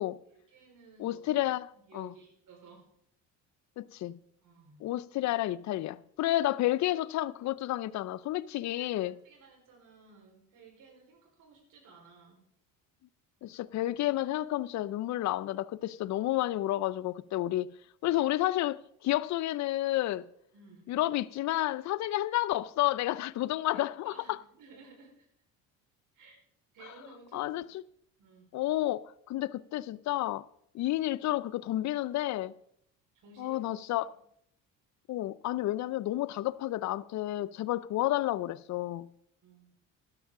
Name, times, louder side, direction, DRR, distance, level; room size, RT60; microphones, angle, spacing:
voice 1, 0.3-1.3 1.7-2.9 4.4-4.8 8.7-12.5 20.5-20.9 23.7-25.3 26.1-26.4 26.7-27.6 28.2-28.5 33.1-33.6 33.9-34.2 39.4-39.8, right 4 dB, 60° right, 4.6 m, -56 dB
voice 2, 1.0-2.1 3.8-4.2 4.8-9.2 13.4-17.8 18.0-20.3 20.9-24.4 27.3-27.6 28.5-30.5 30.7-32.5 33.4-34.1 35.1-39.1, left 15 dB, 50° left, 0.5 m, -31 dB
12.5 x 12.0 x 3.7 m
supercardioid pair, 90°, 35 cm